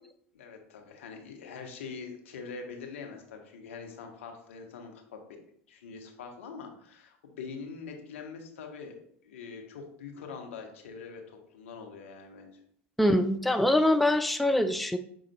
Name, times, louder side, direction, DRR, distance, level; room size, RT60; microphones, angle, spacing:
voice 1, 0.3-5.4 5.7-9.0 9.2-12.6, left 5 dB, 75° left, 3 dB, 0.8 m, -44 dB
voice 2, 13.0-15.0, left 1 dB, ahead, 8 dB, 0.3 m, -24 dB
6.1 x 3.7 x 2.2 m, 0.65 s
hypercardioid pair, 80°, 7 cm